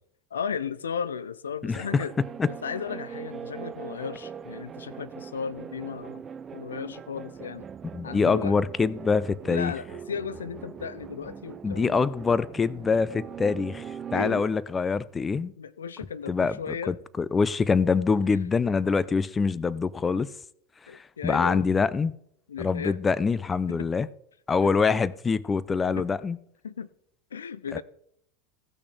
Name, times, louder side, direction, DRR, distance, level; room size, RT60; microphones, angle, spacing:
voice 1, 0.3-2.1 2.6-6.2 6.5-7.7 8.0-8.6 9.4-12.1 14.1-14.5 15.6-17.0 20.9-21.7 22.5-23.0 23.7-23.9 24.6-24.7 26.0-26.1 26.6-26.9 27.3-27.8, left 7 dB, 85° left, 0.5 m, -35 dB
sound 1, 1.7-14.4, right 7 dB, 30° right, 0.5 m, -41 dB
voice 2, 7.9-9.7 11.6-13.8 14.1-15.5 16.3-16.5 16.9-20.3 21.2-22.1 22.6-24.1 24.5-26.4, left 5 dB, 20° left, 0.5 m, -25 dB
16.0 x 6.1 x 4.4 m
hypercardioid pair, 90°, 0 cm